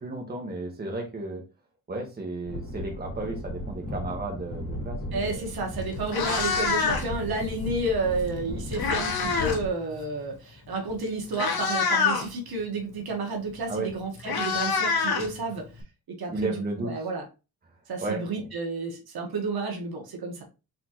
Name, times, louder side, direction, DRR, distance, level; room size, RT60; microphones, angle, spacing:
voice 1, 0.0-1.4 1.9-5.5 13.7-13.9 16.3-16.9 18.0-18.5, right 2 dB, 25° right, 2 dB, 1.0 m, -33 dB
sound 1, 2.4-9.7, left 1 dB, 35° left, 2.3 m, -36 dB
voice 2, 5.1-15.7 16.1-17.2 17.9-20.4, right 2 dB, 75° right, 2 dB, 1.4 m, -31 dB
Meow, 5.5-5.6 6.0-7.2 8.3-9.6 9.9-10.2 10.9-11.0 11.3-12.3 13.6-13.7 13.9-15.8, left 5 dB, 75° left, 1.2 m, -26 dB
4.1 x 3.7 x 2.9 m, 0.29 s
wide cardioid pair, 145°, 37 cm